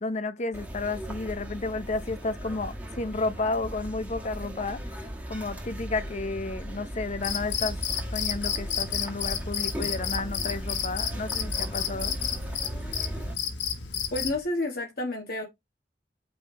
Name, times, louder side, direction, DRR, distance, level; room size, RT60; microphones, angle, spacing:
voice 1, 0.0-7.8 8.1-12.2, left 3 dB, 40° left, 0.7 m, -32 dB
sound 1, 0.5-13.3, equal, 10° right, 1.6 m, -37 dB
Cricket, 7.2-14.4, left 8 dB, 90° left, 1.3 m, -31 dB
voice 2, 14.1-15.4, left 1 dB, 60° left, 1.5 m, -30 dB
6.1 x 5.3 x 3.8 m
head